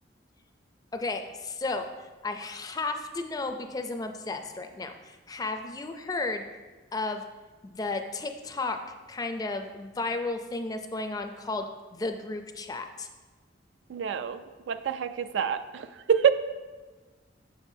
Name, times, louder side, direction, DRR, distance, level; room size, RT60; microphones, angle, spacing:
voice 1, 0.9-6.4 6.9-7.2 7.6-8.8 9.1-13.1, left 3 dB, 20° left, 6 dB, 0.4 m, -33 dB
voice 2, 13.9-14.4 14.7-16.3, right 8 dB, 85° right, 11 dB, 0.3 m, -26 dB
7.2 x 6.6 x 2.6 m, 1.3 s
head